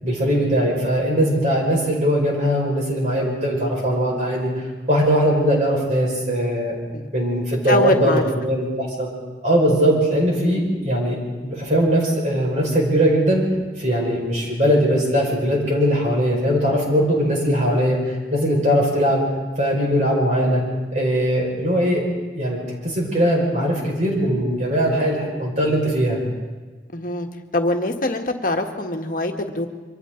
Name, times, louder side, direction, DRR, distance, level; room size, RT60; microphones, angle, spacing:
voice 1, 0.0-6.8 7.1-9.1 9.4-13.4 13.8-19.2 19.6-20.6 20.9-22.0 22.3-26.2, equal, 40° right, -2 dB, 5.3 m, -20 dB
voice 2, 7.7-8.2 26.9-27.3 27.5-29.7, left 1 dB, 50° left, 4 dB, 1.6 m, -23 dB
27.0 x 24.5 x 3.9 m, 1.3 s
head